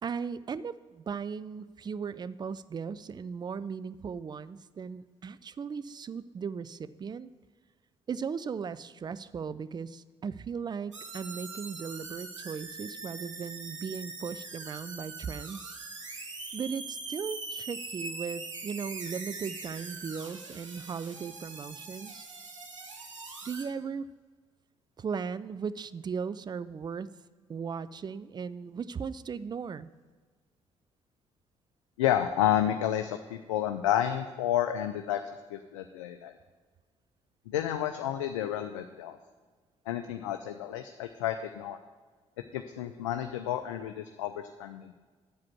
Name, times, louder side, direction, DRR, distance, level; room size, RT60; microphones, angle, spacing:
voice 1, 0.0-7.3 8.1-15.7 16.5-22.3 23.4-24.1 25.0-27.1 27.5-29.9, right 6 dB, 25° right, 16 dB, 0.4 m, -37 dB
sound 1, 10.9-23.6, right 3 dB, 90° right, 0.7 m, -42 dB
voice 2, 32.0-36.3 37.5-39.2 39.9-41.8 42.5-44.9, left 11 dB, 75° left, 8 dB, 0.4 m, -30 dB
8.5 x 4.9 x 7.4 m, 1.4 s
figure-of-eight pair, 45°, 16 cm